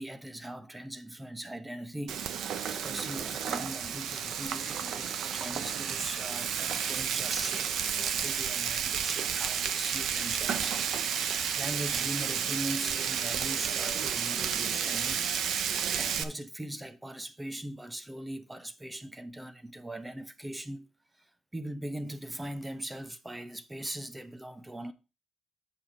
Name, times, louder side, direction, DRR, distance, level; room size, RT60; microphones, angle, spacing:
voice 1, 0.0-2.3 2.7-15.3 16.0-20.9 21.5-24.9, right 1 dB, 10° right, 0.8 m, -40 dB
Frying (food), 2.1-16.2, right 8 dB, 75° right, 0.7 m, -31 dB
7.7 x 5.0 x 4.8 m
cardioid pair, 90°, 0 cm